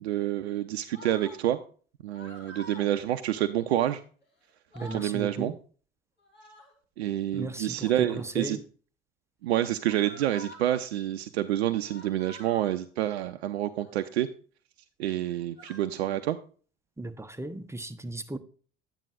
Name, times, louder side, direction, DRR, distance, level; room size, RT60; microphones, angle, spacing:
voice 1, 0.0-1.6 2.0-4.0 4.9-5.5 7.0-8.6 9.4-14.3 15.0-16.4, right 12 dB, 75° right, 0.5 m, -28 dB
sound 1, 0.9-1.4 2.1-2.9 4.2-4.3 4.6-5.2 6.2-6.8 7.7-8.3 9.8-10.8 11.8-12.8 13.7-14.1 15.0-15.8, left 1 dB, 35° left, 3.2 m, -48 dB
voice 2, 4.7-5.6 7.3-8.6 17.0-18.4, right 2 dB, 10° right, 0.6 m, -36 dB
10.5 x 8.9 x 2.5 m
figure-of-eight pair, 60°, 32 cm